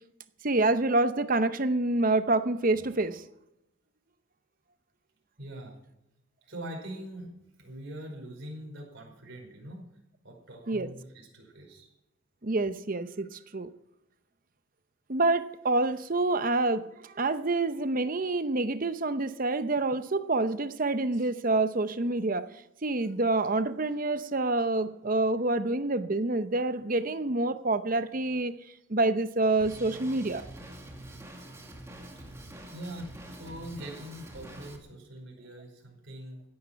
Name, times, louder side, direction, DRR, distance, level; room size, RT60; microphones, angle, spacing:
voice 1, 0.4-3.2 10.7-10.9 12.4-13.7 15.1-22.5 22.8-28.5 28.9-30.4, right 2 dB, 40° right, 12 dB, 0.8 m, -27 dB
voice 2, 5.4-5.7 6.5-9.8 10.2-11.9 32.7-36.4, right 1 dB, 55° right, 0 dB, 5.1 m, -43 dB
Drum kit, 29.6-34.8, right 1 dB, 15° right, 2.0 m, -45 dB
16.5 x 10.5 x 5.9 m, 0.88 s
head